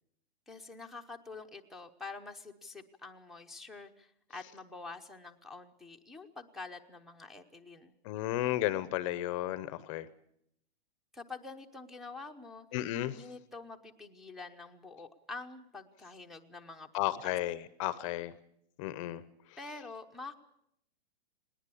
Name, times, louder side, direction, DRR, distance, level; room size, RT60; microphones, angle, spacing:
voice 1, 0.5-8.0 11.1-17.3 19.6-20.3, left 3 dB, ahead, 1 dB, 0.8 m, -47 dB
voice 2, 8.0-10.1 12.7-13.2 16.9-18.3 18.8-19.2, left 14 dB, 30° left, 16 dB, 0.8 m, -33 dB
20.5 x 19.0 x 8.4 m, 0.73 s
hypercardioid pair, 150°, 32 cm